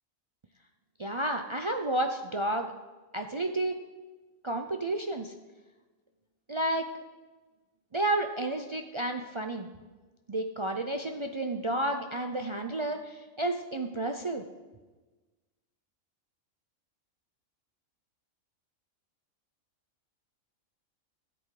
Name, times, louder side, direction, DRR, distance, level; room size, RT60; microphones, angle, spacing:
voice 1, 1.0-2.7 3.1-3.8 4.4-5.3 6.5-6.9 7.9-9.7 10.3-14.4, right 1 dB, 50° right, 5 dB, 0.3 m, -31 dB
13.0 x 7.9 x 4.8 m, 1.2 s
omnidirectional pair, 1.4 m